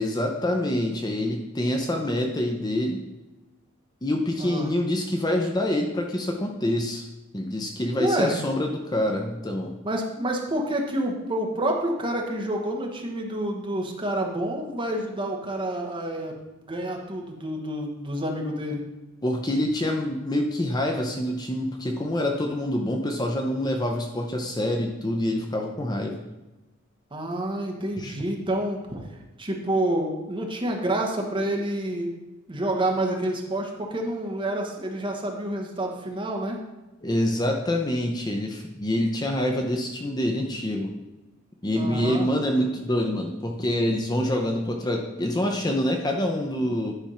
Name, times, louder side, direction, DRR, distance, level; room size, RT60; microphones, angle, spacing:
voice 1, 0.0-3.0 4.0-7.1 7.3-9.7 19.2-26.2 28.0-28.1 37.0-40.9 41.6-46.9, left 1 dB, 20° left, 2 dB, 0.6 m, -26 dB
voice 2, 4.4-4.7 7.9-8.3 9.8-16.3 16.7-18.9 27.1-29.0 29.4-32.1 32.5-36.6 41.8-42.3, right 1 dB, 25° right, 1 dB, 1.1 m, -28 dB
10.0 x 3.5 x 5.6 m, 1.0 s
head